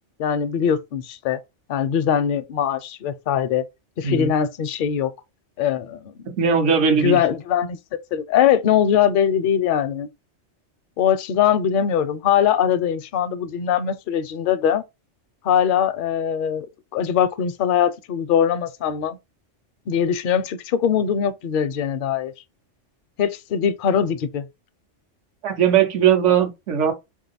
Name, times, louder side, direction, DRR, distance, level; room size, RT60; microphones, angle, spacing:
voice 1, 0.2-1.4 1.7-3.7 4.0-5.1 5.6-6.1 7.0-10.1 11.0-14.8 15.4-19.2 19.9-22.3 23.2-24.5, left 8 dB, 60° left, 0.6 m, -21 dB
voice 2, 6.3-7.2 25.4-26.9, right 7 dB, 75° right, 1.2 m, -19 dB
3.6 x 2.9 x 3.9 m
omnidirectional pair, 1.2 m